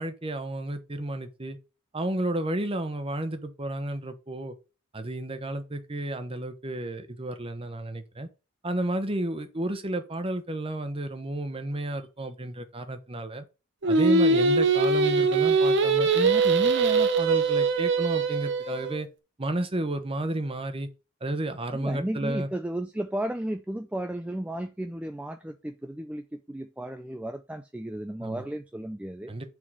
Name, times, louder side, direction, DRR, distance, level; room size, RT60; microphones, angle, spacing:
voice 1, 0.0-1.6 1.9-4.5 4.9-8.3 8.6-13.4 13.9-19.1 19.4-20.9 21.2-22.5 28.2-28.5 29.3-29.4, right 1 dB, 25° right, 0.9 m, -32 dB
Singing, 13.8-19.0, right 4 dB, 55° right, 0.8 m, -22 dB
voice 2, 21.7-29.3, right 1 dB, 5° right, 0.3 m, -34 dB
6.2 x 3.7 x 6.1 m
head